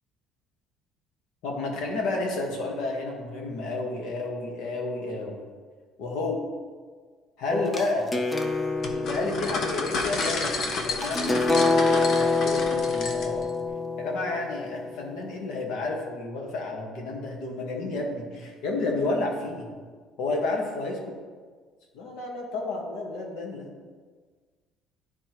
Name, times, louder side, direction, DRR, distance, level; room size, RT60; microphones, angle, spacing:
voice 1, 1.4-5.4 6.0-6.3 7.4-8.1 8.9-13.5 14.0-19.7 20.2-21.1 21.9-23.7, left 2 dB, 70° left, 0 dB, 1.4 m, -31 dB
sound 1, 7.5-15.2, left 3 dB, 10° left, 0.5 m, -27 dB
sound 2, 8.8-13.5, left 3 dB, 45° left, 0.7 m, -31 dB
11.0 x 4.3 x 3.0 m, 1.5 s
cardioid pair, 170°, 0 cm